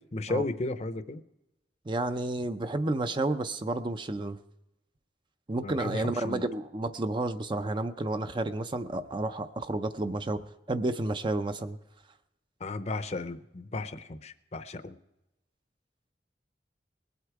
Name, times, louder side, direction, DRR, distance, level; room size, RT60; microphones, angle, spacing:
voice 1, 0.1-1.2 5.6-6.4 12.6-15.0, left 2 dB, 40° left, 11 dB, 0.6 m, -34 dB
voice 2, 1.9-4.4 5.5-10.4 10.7-11.8, right 2 dB, 25° right, 9 dB, 0.5 m, -31 dB
20.5 x 8.1 x 4.7 m, 0.94 s
head